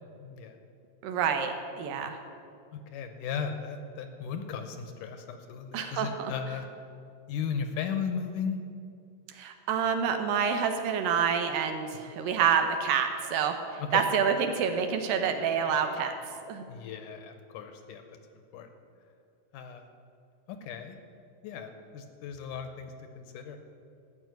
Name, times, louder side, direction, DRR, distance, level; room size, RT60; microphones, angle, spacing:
voice 1, 0.2-0.6 1.9-2.1 2.7-6.7 7.3-8.6 13.8-14.1 16.7-18.7 19.5-19.9 20.5-21.0 21.4-23.6, left 6 dB, 75° left, 7 dB, 2.2 m, -36 dB
voice 2, 1.0-2.2 5.7-6.3 9.3-16.1 16.5-16.6, right 7 dB, 75° right, 6 dB, 2.6 m, -28 dB
14.0 x 6.3 x 9.3 m, 2.4 s
omnidirectional pair, 4.1 m